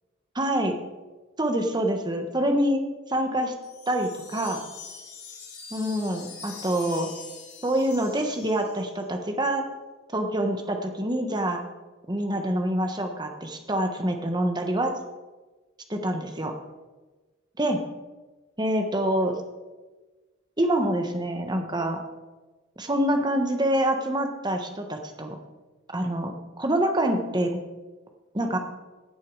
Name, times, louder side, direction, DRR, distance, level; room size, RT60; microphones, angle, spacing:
voice 1, 0.3-0.8 1.4-2.8 3.1-3.5 3.9-4.6 5.7-7.1 7.6-9.6 10.1-11.6 12.1-14.9 15.9-16.5 17.6-17.8 18.6-19.4 20.6-22.0 22.8-25.4 25.9-27.5 28.3-28.6, right 1 dB, 20° right, 4 dB, 1.3 m, -26 dB
sound 1, 3.6-9.0, left 5 dB, 55° left, 3.3 m, -44 dB
16.0 x 8.3 x 4.8 m, 1.2 s
head